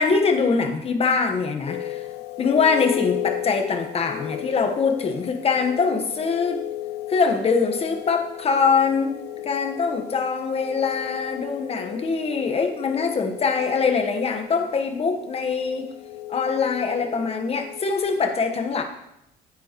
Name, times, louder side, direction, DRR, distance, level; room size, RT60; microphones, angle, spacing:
voice 1, 0.0-2.0 2.4-6.6 7.1-15.9 16.3-18.8, left 5 dB, 35° left, 6 dB, 1.2 m, -23 dB
sound 1, 1.7-18.0, left 14 dB, 80° left, 0.8 m, -35 dB
9.5 x 9.3 x 3.0 m, 0.82 s
cardioid pair, 110°, 17 cm